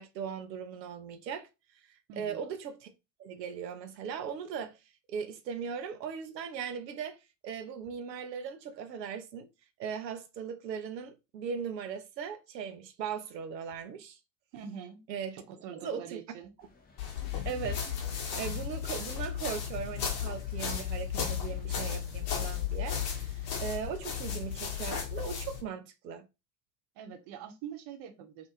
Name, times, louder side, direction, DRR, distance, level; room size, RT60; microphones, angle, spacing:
voice 1, 0.0-1.5 1.9-2.9 3.2-4.8 5.1-7.2 7.4-9.5 9.8-14.2 15.1-15.4 15.7-16.2 17.4-26.3, right 7 dB, 80° right, 0.5 m, -39 dB
voice 2, 2.1-2.4 14.5-15.0 15.3-16.5 27.0-28.5, right 8 dB, 55° right, 0.9 m, -44 dB
sound 1, 16.6-24.9, left 4 dB, 20° left, 0.7 m, -53 dB
sound 2, 17.0-25.6, left 8 dB, 60° left, 0.9 m, -34 dB
2.4 x 2.4 x 2.9 m
figure-of-eight pair, 50°, 49 cm